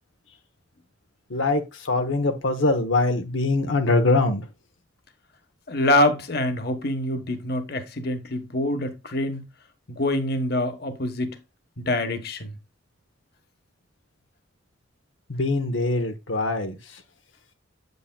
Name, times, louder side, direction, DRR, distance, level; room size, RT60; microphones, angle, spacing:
voice 1, 1.3-4.4 15.3-17.0, left 2 dB, 85° left, 1.0 m, -23 dB
voice 2, 5.7-9.4 9.9-11.3 11.8-12.5, left 1 dB, 55° left, 1.2 m, -25 dB
8.5 x 8.2 x 2.2 m
head